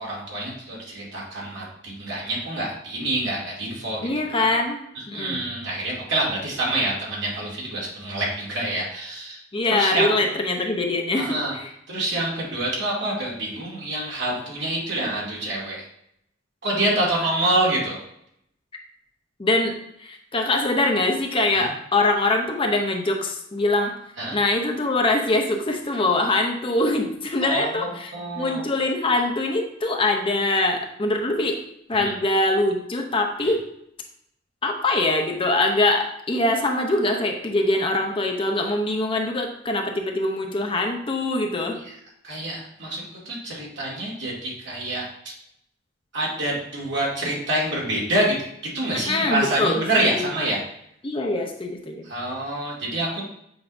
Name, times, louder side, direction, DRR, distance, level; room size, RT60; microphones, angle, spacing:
voice 1, 0.0-4.0 4.3-4.5 5.0-9.4 9.7-10.1 11.2-11.5 11.9-15.9 16.6-18.0 21.5-21.7 24.2-24.4 27.4-27.7 28.1-28.6 31.9-32.1 33.4-33.5 41.8-42.0 42.2-45.0 46.1-48.4 48.7-50.6 52.0-53.2, right 1 dB, 60° right, -4 dB, 2.3 m, -26 dB
voice 2, 4.0-4.8 5.1-5.4 9.5-11.7 19.4-19.7 20.0-23.9 24.3-31.6 31.9-33.6 34.6-41.8 49.1-49.8 50.2-50.3 51.0-52.0, left 2 dB, 25° left, 2 dB, 0.7 m, -23 dB
7.9 x 4.9 x 2.6 m, 0.75 s
head